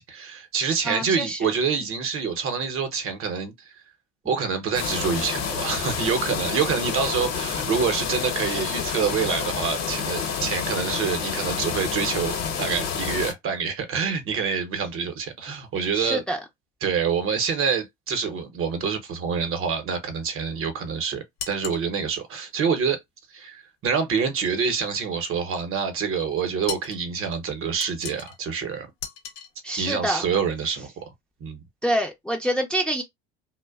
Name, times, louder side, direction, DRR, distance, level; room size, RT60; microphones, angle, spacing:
voice 1, 0.0-3.7 4.2-16.2 16.8-23.0 23.3-28.9 29.8-31.0 31.4-31.6, right 6 dB, 45° right, 0.9 m, -26 dB
voice 2, 0.8-1.5 15.9-16.4 29.6-30.2 31.8-33.0, right 1 dB, 5° left, 0.6 m, -26 dB
sound 1, 4.7-13.3, left 7 dB, 55° left, 0.9 m, -29 dB
sound 2, 21.4-21.9 26.7-27.0 27.8-28.4 29.0-29.5, left 7 dB, 80° left, 0.8 m, -35 dB
2.5 x 2.1 x 2.4 m
hypercardioid pair, 85°, 31 cm